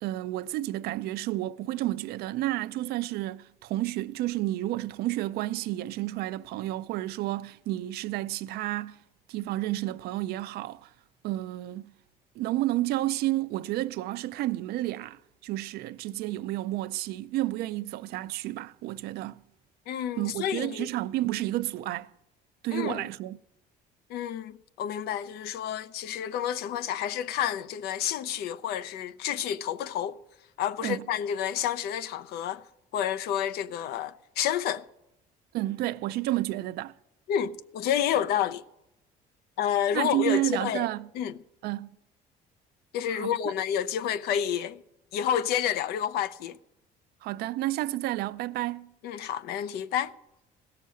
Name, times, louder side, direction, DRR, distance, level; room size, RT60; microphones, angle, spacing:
voice 1, 0.0-9.0 9.3-10.9 11.2-11.9 12.4-19.4 20.2-22.1 22.6-23.4 30.8-31.0 35.5-36.9 39.9-41.1 41.6-41.9 43.1-43.3 47.2-48.9, right 16 dB, 75° right, 0.5 m, -31 dB
voice 2, 19.9-20.9 22.7-23.1 24.1-30.2 30.6-32.6 32.9-34.9 37.3-38.6 39.6-40.9 41.1-41.3 42.9-44.8 45.1-46.6 49.0-50.1, left 9 dB, 75° left, 0.6 m, -29 dB
16.5 x 6.8 x 7.6 m
cardioid pair, 115°, 16 cm